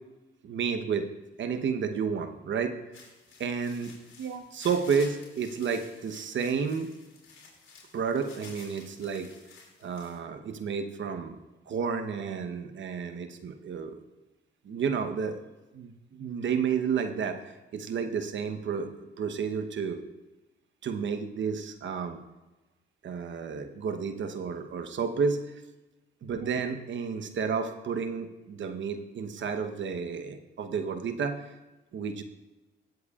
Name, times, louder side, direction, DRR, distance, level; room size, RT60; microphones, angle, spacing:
voice 1, 0.4-1.1 1.4-2.8 3.4-3.9 4.2-6.9 7.9-9.3 9.8-11.4 11.7-14.0 14.7-15.4 15.7-15.9 16.2-17.4 17.7-18.9 19.2-20.0 20.8-22.2 23.0-25.4 26.2-31.4 31.9-32.2, right 6 dB, 60° right, 7 dB, 1.0 m, -31 dB
sound 1, 2.9-10.2, left 4 dB, 70° left, 4.0 m, -52 dB
18.0 x 7.9 x 2.4 m, 1.1 s
cardioid pair, 80°, 21 cm